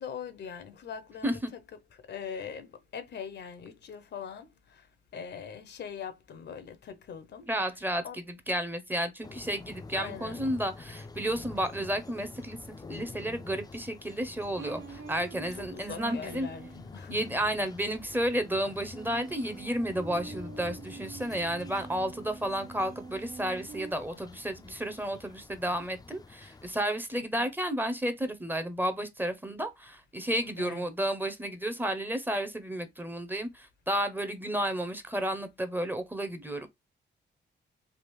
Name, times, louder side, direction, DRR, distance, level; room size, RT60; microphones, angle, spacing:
voice 1, 0.0-1.4 1.9-7.5 8.0-8.2 9.9-10.4 15.5-17.4 24.1-24.2 27.1-27.4 30.6-30.9, left 7 dB, 65° left, 0.6 m, -42 dB
voice 2, 7.5-12.6 12.9-16.5 17.1-36.7, right 1 dB, 10° right, 0.7 m, -32 dB
sound 1, 9.2-26.7, left 3 dB, 20° left, 0.4 m, -48 dB
sound 2, 14.6-16.8 18.9-23.9, right 5 dB, 80° right, 0.7 m, -45 dB
3.4 x 2.4 x 3.1 m
cardioid pair, 80°, 19 cm